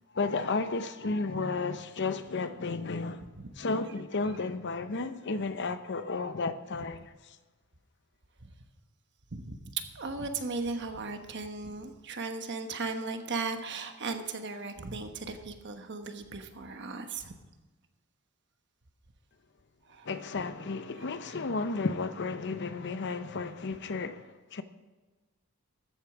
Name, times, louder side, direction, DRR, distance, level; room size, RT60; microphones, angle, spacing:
voice 1, 0.1-3.3 3.6-7.4 20.0-24.6, left 3 dB, 55° left, 0.7 m, -33 dB
voice 2, 9.3-17.4 19.9-20.1, right 4 dB, 55° right, 1.2 m, -37 dB
14.0 x 8.2 x 6.0 m
head